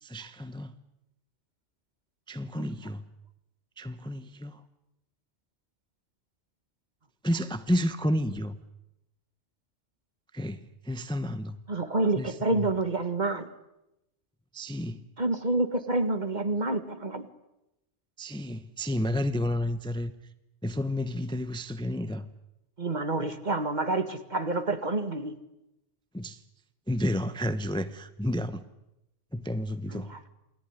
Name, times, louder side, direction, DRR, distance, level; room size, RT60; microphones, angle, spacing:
voice 1, 0.0-0.7 2.3-3.0 3.8-4.6 7.2-8.6 10.3-11.6 12.2-12.7 14.5-15.0 15.9-16.0 18.2-20.1 20.6-22.3 26.1-26.4 26.9-28.6 29.3-30.1, equal, 5° left, 11 dB, 0.9 m, -31 dB
voice 2, 11.7-13.5 15.2-17.3 22.8-25.4 29.9-30.3, right 2 dB, 40° right, 10 dB, 1.9 m, -28 dB
28.5 x 19.5 x 9.8 m, 0.91 s
omnidirectional pair, 1.2 m